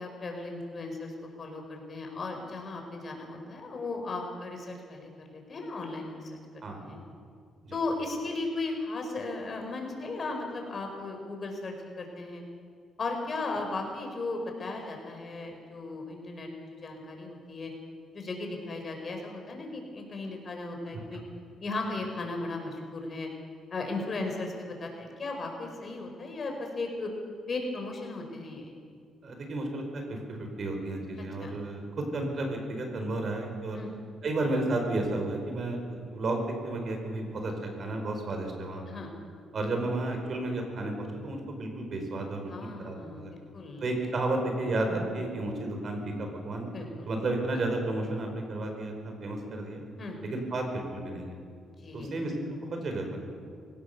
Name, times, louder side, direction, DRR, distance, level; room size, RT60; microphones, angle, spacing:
voice 1, 0.0-7.0 7.7-12.4 13.0-17.7 18.1-21.2 21.6-23.3 23.7-27.1 27.5-28.7 31.4-31.6 33.7-33.9 38.9-39.1 42.5-43.3 43.5-43.8 46.7-47.1 50.0-50.2 51.8-52.2, left 3 dB, 40° left, 2 dB, 5.0 m, -36 dB
voice 2, 6.6-6.9 7.6-7.8 29.2-33.8 34.2-38.8 39.5-42.5 42.8-43.3 43.8-46.7 47.1-49.8 50.2-51.4 51.9-53.2, right 2 dB, 50° right, 3 dB, 5.0 m, -32 dB
23.0 x 17.5 x 6.9 m, 2.1 s
cardioid pair, 90°, 0 cm